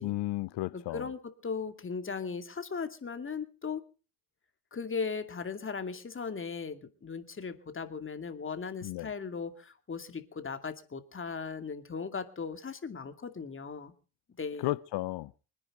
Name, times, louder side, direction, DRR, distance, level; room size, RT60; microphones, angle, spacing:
voice 1, 0.0-1.1 8.8-9.1 14.6-15.3, left 17 dB, 75° left, 0.7 m, -33 dB
voice 2, 0.7-3.8 4.7-13.9 14.4-14.7, left 5 dB, 30° left, 2.4 m, -38 dB
25.5 x 10.0 x 4.9 m
cardioid pair, 105°, 41 cm